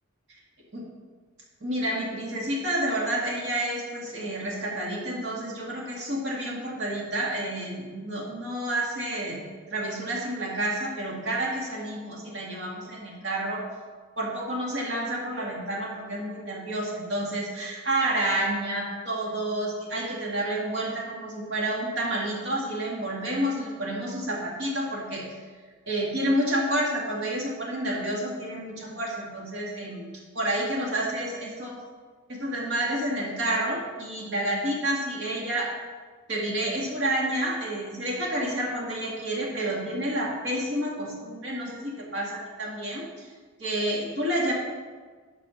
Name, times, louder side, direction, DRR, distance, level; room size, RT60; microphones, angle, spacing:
voice 1, 1.6-9.4 9.7-13.6 14.2-25.4 25.9-30.1 30.3-31.8 32.3-35.7 36.3-43.3 43.6-44.5, right 1 dB, 60° right, -3 dB, 2.2 m, -29 dB
9.0 x 5.7 x 5.8 m, 1.5 s
head